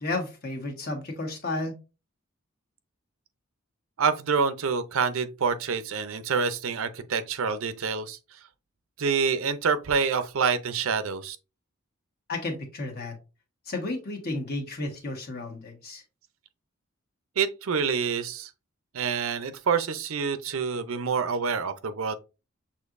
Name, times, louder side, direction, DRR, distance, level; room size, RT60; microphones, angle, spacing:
voice 1, 0.0-1.7 12.3-13.1 13.7-16.0, left 2 dB, 50° left, 1.2 m, -32 dB
voice 2, 4.0-8.2 9.0-11.4 17.4-18.5 18.9-22.2, right 5 dB, 80° right, 0.5 m, -27 dB
6.4 x 2.8 x 2.5 m
head